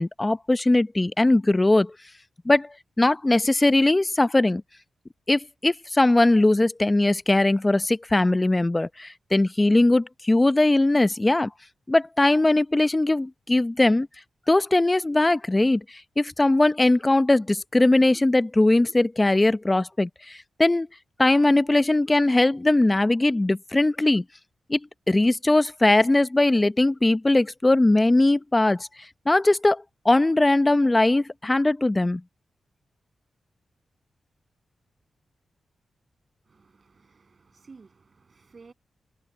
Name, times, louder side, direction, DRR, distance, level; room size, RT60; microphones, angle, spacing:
voice 1, 0.0-1.9 2.4-4.6 5.3-11.5 11.9-14.1 14.5-15.8 16.2-20.9 21.2-24.2 24.7-24.8 25.1-28.9 29.3-32.2, left 2 dB, 25° left, 0.8 m, -20 dB
voice 2, 36.5-38.7, right 4 dB, 50° right, 7.7 m, -53 dB
cardioid pair, 50°, 0 cm